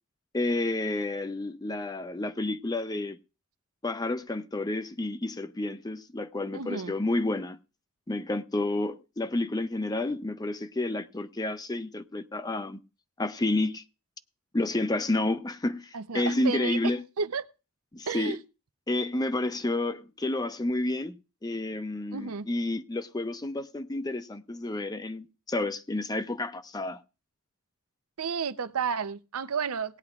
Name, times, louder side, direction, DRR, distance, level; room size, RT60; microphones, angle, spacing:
voice 1, 0.3-3.2 3.8-7.6 8.1-12.8 13.2-13.8 14.5-15.9 16.1-17.0 17.9-18.4 18.9-21.2 21.4-27.0, left 2 dB, 20° left, 0.5 m, -30 dB
voice 2, 6.5-7.0 15.9-17.4 18.1-18.4 22.1-22.5 28.2-30.0, right 6 dB, 80° right, 0.6 m, -32 dB
18.5 x 9.7 x 2.4 m
head